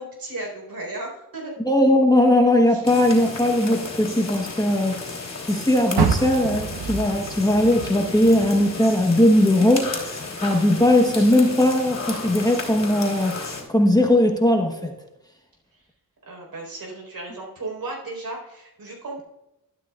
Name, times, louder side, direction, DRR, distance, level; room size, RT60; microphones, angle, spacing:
voice 1, 0.0-1.6 2.7-2.8 15.7-15.8 16.3-19.2, right 2 dB, 65° right, -1 dB, 4.3 m, -35 dB
voice 2, 1.6-5.0 5.5-13.4 13.7-14.9, left 1 dB, 10° left, 2 dB, 1.1 m, -19 dB
sound 1, 2.8-13.6, left 3 dB, 45° left, 3.3 m, -34 dB
Car, 5.9-9.2 9.6-11.0 11.4-11.5 12.1-12.2, right 6 dB, 85° right, 0.9 m, -28 dB
12.5 x 12.5 x 2.4 m, 0.91 s
wide cardioid pair, 120°, 37 cm